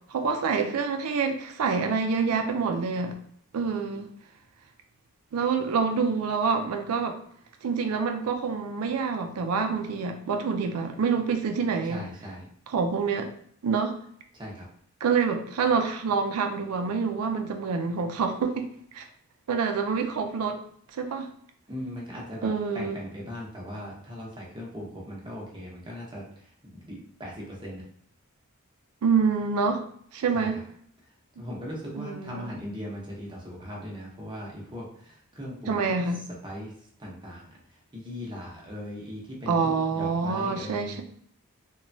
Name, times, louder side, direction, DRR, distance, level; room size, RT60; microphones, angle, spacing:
voice 1, 0.1-3.1 3.5-4.1 5.3-7.2 7.6-12.1 12.7-13.3 13.6-13.9 15.0-18.7 18.9-19.0 19.5-20.6 20.9-21.3 22.4-23.0 29.0-29.8 30.1-30.6 32.0-32.4 35.7-36.2 39.5-41.0, right 5 dB, 80° right, 5 dB, 0.4 m, -27 dB
voice 2, 11.9-12.4 14.3-14.7 21.7-27.8 30.3-30.6 31.4-35.8 36.4-36.7 37.0-41.0, equal, 20° right, -3 dB, 0.7 m, -39 dB
3.0 x 2.2 x 2.6 m, 0.63 s
head